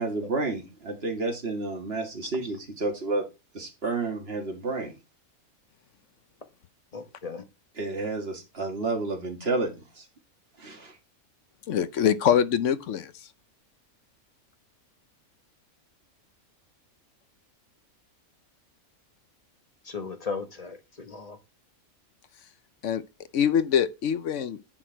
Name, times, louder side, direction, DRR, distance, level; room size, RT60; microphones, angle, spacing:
voice 1, 0.0-3.2 3.5-4.9 7.8-10.1 10.6-11.0, right 3 dB, 45° right, 2.0 m, -30 dB
voice 2, 6.9-7.4 19.9-21.4, left 4 dB, 30° left, 1.2 m, -36 dB
voice 3, 11.7-13.1 22.8-23.0 23.3-24.6, left 8 dB, 65° left, 1.0 m, -24 dB
10.0 x 4.5 x 4.5 m
omnidirectional pair, 1.5 m